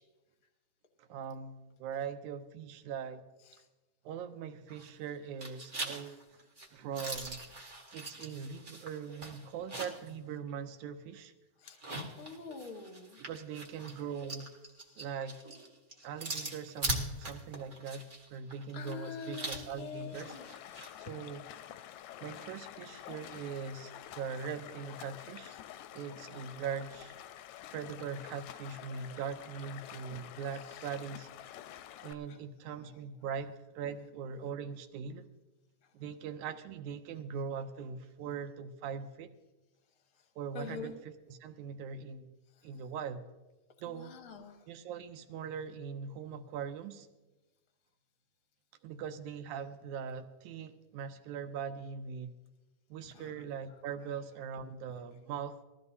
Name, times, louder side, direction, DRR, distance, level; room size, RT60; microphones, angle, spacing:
voice 1, 1.0-3.2 4.1-6.2 6.7-7.4 7.9-11.3 13.2-14.5 15.0-15.4 16.0-20.4 21.0-21.5 22.2-25.6 25.9-27.2 27.7-31.3 32.0-35.3 35.9-39.3 40.4-42.3 42.6-43.2 43.8-44.1 44.7-47.1 48.8-52.4 52.9-55.6, right 6 dB, 80° right, 8 dB, 2.0 m, -41 dB
sound 1, 4.7-5.1 5.4-10.1 10.5-10.6 11.6-20.9, right 1 dB, 60° right, 0.5 m, -42 dB
voice 2, 12.2-13.2 18.7-20.5 32.3-32.4 40.5-40.9 43.9-44.6 53.1-53.4, left 5 dB, 50° left, 4 dB, 0.9 m, -45 dB
Stream, 20.1-32.1, left 12 dB, 80° left, 1.8 m, -48 dB
20.0 x 15.0 x 2.7 m, 1.1 s
omnidirectional pair, 3.6 m